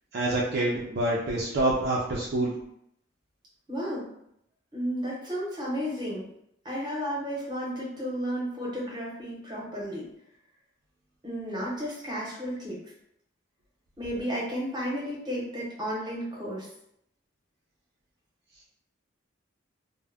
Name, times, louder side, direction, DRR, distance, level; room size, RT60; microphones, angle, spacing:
voice 1, 0.1-2.5, right 1 dB, 50° right, -4 dB, 0.4 m, -26 dB
voice 2, 3.7-4.1 4.7-6.3 6.6-10.1 11.2-12.8 14.0-16.7, equal, 20° right, -5 dB, 0.8 m, -33 dB
2.2 x 2.1 x 3.4 m, 0.74 s
head